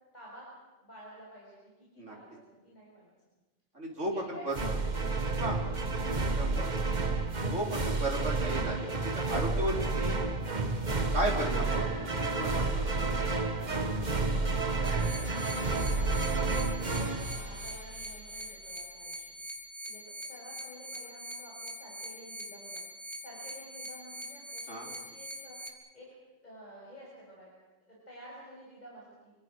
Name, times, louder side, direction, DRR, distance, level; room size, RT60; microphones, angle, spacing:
voice 1, 0.1-0.5 0.8-3.1 4.1-4.8 11.8-12.2 14.0-16.7 17.1-19.3 19.8-22.8 23.2-25.6 25.9-26.1 26.4-27.5 27.9-29.3, equal, 35° left, -5 dB, 7.2 m, -51 dB
voice 2, 3.8-4.5 5.4-5.6 6.1-7.0 7.5-8.9 9.2-10.2 11.1-11.9 12.2-13.1 24.7-24.9, right 1 dB, 70° right, -1 dB, 5.2 m, -35 dB
sound 1, 4.5-18.2, right 3 dB, 35° right, 1.6 m, -30 dB
sound 2, 14.8-25.7, right 1 dB, 20° right, 2.7 m, -43 dB
29.5 x 24.5 x 6.5 m, 1.1 s
omnidirectional pair, 1.3 m